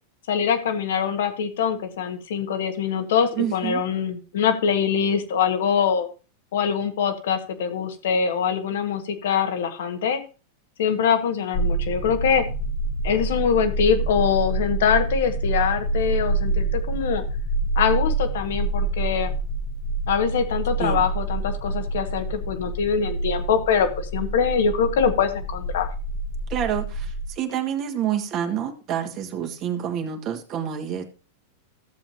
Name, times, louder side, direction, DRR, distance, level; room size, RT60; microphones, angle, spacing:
voice 1, 0.3-6.1 6.5-10.2 10.8-12.4 13.0-17.2 17.7-19.3 20.1-25.9, left 7 dB, 70° left, 8 dB, 1.6 m, -23 dB
voice 2, 3.4-3.8 20.8-21.0 26.5-31.0, right 9 dB, 40° right, 4 dB, 1.8 m, -28 dB
sound 1, 11.5-27.3, right 2 dB, 50° left, 1.9 m, -27 dB
14.5 x 7.3 x 2.8 m, 0.34 s
hypercardioid pair, 100°, 0 cm